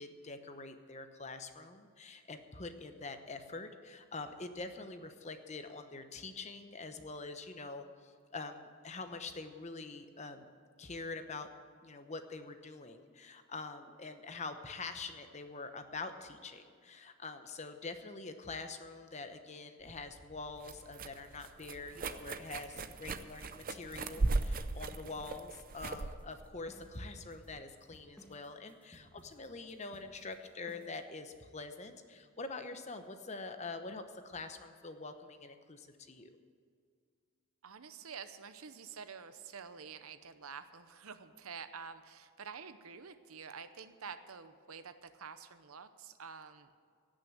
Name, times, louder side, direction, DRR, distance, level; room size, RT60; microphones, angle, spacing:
voice 1, 0.0-10.4 10.8-11.5 11.8-36.3, left 3 dB, 30° left, 8 dB, 0.9 m, -45 dB
sound 1, 19.9-27.6, right 3 dB, 40° right, 0.6 m, -38 dB
sound 2, 23.2-31.1, equal, 5° left, 1.6 m, -60 dB
voice 2, 37.6-46.8, right 6 dB, 80° right, 11 dB, 0.8 m, -48 dB
17.0 x 6.3 x 8.8 m, 2.1 s
head